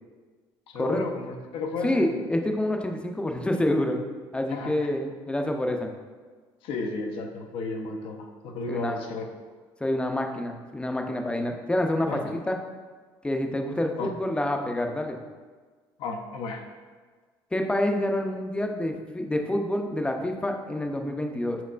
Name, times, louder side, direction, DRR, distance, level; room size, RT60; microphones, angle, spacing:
voice 1, 0.7-2.0 4.5-4.8 6.6-9.3 12.1-12.2 14.0-14.1 16.0-16.6, left 3 dB, 70° left, 3 dB, 0.6 m, -33 dB
voice 2, 1.8-4.0 4.3-5.9 8.7-9.0 9.8-12.6 13.2-15.2 17.5-21.6, left 1 dB, 10° left, 3 dB, 0.5 m, -27 dB
4.7 x 4.4 x 2.4 m, 1.5 s
supercardioid pair, 90°, 9 cm